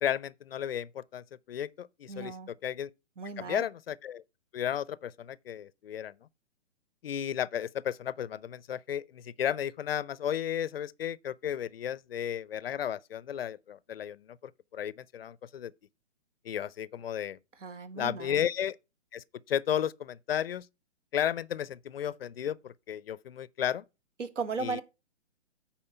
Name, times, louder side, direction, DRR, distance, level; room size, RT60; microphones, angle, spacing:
voice 1, 0.0-2.9 3.4-4.2 4.5-6.1 7.0-14.4 14.7-15.7 16.5-17.4 17.9-18.8 19.1-20.7 21.1-23.8 24.6-24.8, left 9 dB, 55° left, 0.4 m, -33 dB
voice 2, 2.1-2.5 3.2-3.6 17.6-18.4 24.2-24.8, right 4 dB, 80° right, 1.4 m, -36 dB
8.8 x 4.4 x 5.6 m
hypercardioid pair, 155°, 36 cm